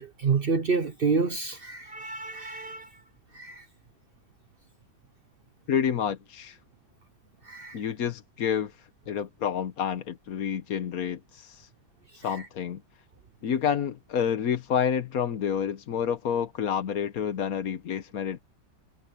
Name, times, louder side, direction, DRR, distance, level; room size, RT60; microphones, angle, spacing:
voice 1, 0.0-2.9 3.3-3.6 7.4-7.8, right 4 dB, 50° right, 0.7 m, -28 dB
voice 2, 5.7-6.6 7.7-11.7 12.1-12.8 13.4-18.4, left 8 dB, 60° left, 1.3 m, -29 dB
omnidirectional pair, 1.9 m